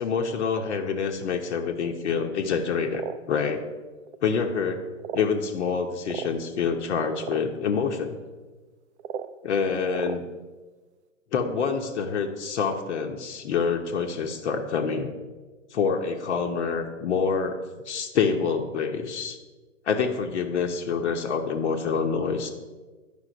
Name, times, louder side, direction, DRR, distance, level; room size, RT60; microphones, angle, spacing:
voice 1, 0.0-3.6 4.2-4.8 5.1-8.2 9.4-10.2 11.3-15.1 15.7-17.6 17.9-19.4 19.9-22.5, left 6 dB, 60° left, 3 dB, 1.1 m, -26 dB
sound 1, 2.9-3.2 4.1-4.2 5.0-5.3 6.1-6.3 7.2-7.4 9.0-9.3 9.9-10.2, right 9 dB, 60° right, 0.6 m, -34 dB
10.0 x 5.6 x 5.1 m, 1.3 s
hypercardioid pair, 130°, 39 cm